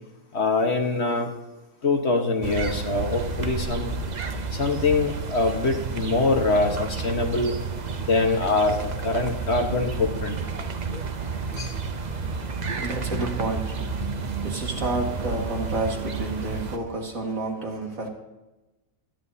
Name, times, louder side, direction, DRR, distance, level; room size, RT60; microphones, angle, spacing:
voice 1, 0.3-1.3 1.8-3.9 4.5-7.5 8.0-10.4 11.6-11.7, left 3 dB, 50° left, 1.5 m, -24 dB
sound 1, 2.4-16.8, right 4 dB, 40° right, 0.6 m, -31 dB
voice 2, 12.1-18.1, right 2 dB, 65° right, 2.3 m, -31 dB
25.5 x 9.7 x 2.8 m
omnidirectional pair, 1.6 m